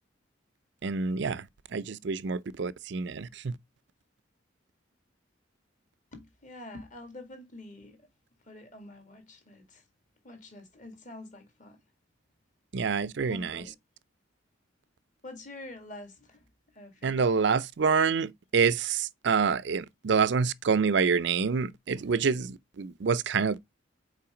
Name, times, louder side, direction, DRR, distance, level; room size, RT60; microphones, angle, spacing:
voice 1, 0.8-1.5 1.7-3.5 12.7-13.6 17.0-23.6, right 5 dB, 60° right, 0.4 m, -27 dB
voice 2, 6.1-8.1 8.4-9.9 10.2-11.8 13.3-13.8 15.2-16.5 16.7-17.7, left 2 dB, 40° left, 1.9 m, -47 dB
5.7 x 4.6 x 4.9 m
head